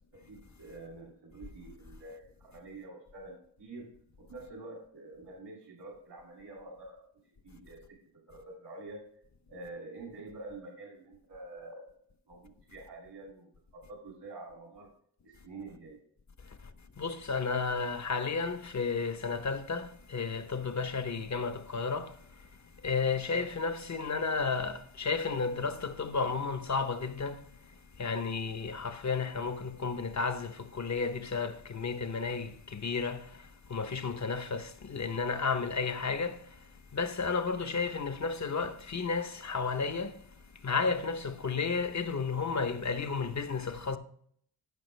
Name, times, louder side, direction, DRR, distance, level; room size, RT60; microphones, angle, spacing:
voice 1, 0.1-3.9 4.2-9.0 9.5-12.0 12.3-14.9 15.2-16.0, right 2 dB, 75° right, 2.4 m, -47 dB
voice 2, 17.0-22.1 22.8-27.4 28.0-33.3 33.7-36.4 36.9-40.1 40.6-44.0, left 4 dB, 40° left, 0.8 m, -32 dB
13.5 x 5.9 x 3.2 m
wide cardioid pair, 115°, 42 cm